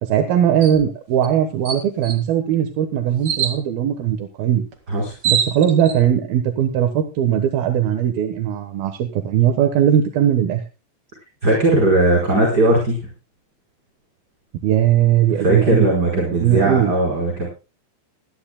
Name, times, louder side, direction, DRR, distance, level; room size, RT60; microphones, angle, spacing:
voice 1, 0.0-4.6 5.2-10.6 14.6-15.9 16.1-16.9, right 10 dB, 65° right, 7 dB, 2.6 m, -19 dB
sound 1, 0.6-0.8 1.2-1.3 1.6-2.2 3.2-3.6 4.7-4.8 5.0-6.0, right 8 dB, 45° right, 1.7 m, -23 dB
voice 2, 11.4-13.0 15.4-17.5, right 2 dB, 20° right, -1 dB, 4.8 m, -18 dB
19.5 x 14.0 x 2.3 m, 0.30 s
omnidirectional pair, 5.7 m